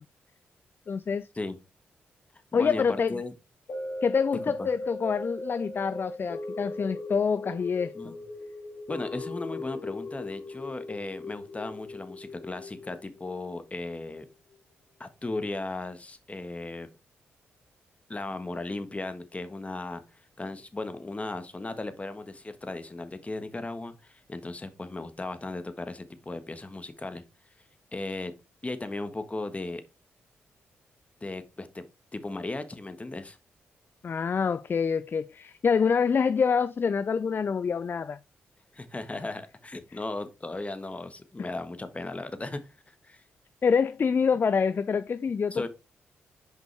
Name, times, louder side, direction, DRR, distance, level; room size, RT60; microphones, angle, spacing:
voice 1, 0.9-1.3 2.5-3.1 4.0-8.1 34.0-38.2 41.4-41.5 43.6-45.7, left 6 dB, 45° left, 0.3 m, -26 dB
voice 2, 2.5-3.3 4.6-4.7 7.9-8.2 8.9-14.3 15.0-16.9 18.1-20.0 20.4-27.2 27.9-28.3 28.6-29.8 31.2-31.8 32.1-33.4 38.7-42.6 43.0-43.2 45.5-45.7, left 2 dB, 25° left, 1.3 m, -36 dB
sound 1, 3.7-14.0 14.5-14.6, left 2 dB, 60° left, 1.9 m, -39 dB
6.3 x 5.3 x 3.4 m
hypercardioid pair, 40°, 5 cm